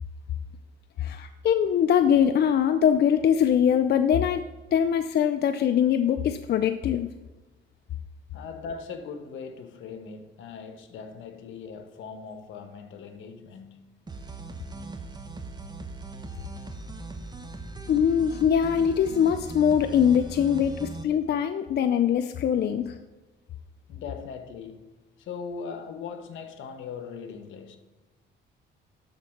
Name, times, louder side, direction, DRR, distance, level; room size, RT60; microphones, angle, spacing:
voice 1, 1.0-4.4 4.7-7.1 17.9-23.0, left 8 dB, 55° left, 0.5 m, -22 dB
voice 2, 8.3-13.9 23.9-27.8, left 5 dB, 80° left, 1.1 m, -40 dB
sound 1, 14.1-21.0, right 3 dB, 20° right, 1.0 m, -39 dB
12.0 x 4.0 x 5.9 m
cardioid pair, 90°, 20 cm